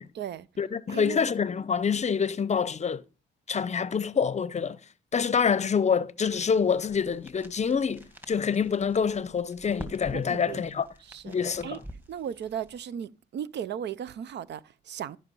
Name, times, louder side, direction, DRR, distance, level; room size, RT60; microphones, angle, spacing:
voice 1, 0.0-0.5 0.9-1.2 10.1-10.7 11.0-11.4 11.6-11.8 12.1-15.2, right 9 dB, 60° right, 0.6 m, -36 dB
voice 2, 0.6-3.0 3.5-4.8 5.1-10.9 11.2-11.8, left 6 dB, 35° left, 0.7 m, -26 dB
sound 1, 6.3-12.8, equal, 10° right, 1.9 m, -48 dB
13.5 x 5.5 x 5.4 m
cardioid pair, 90°, 20 cm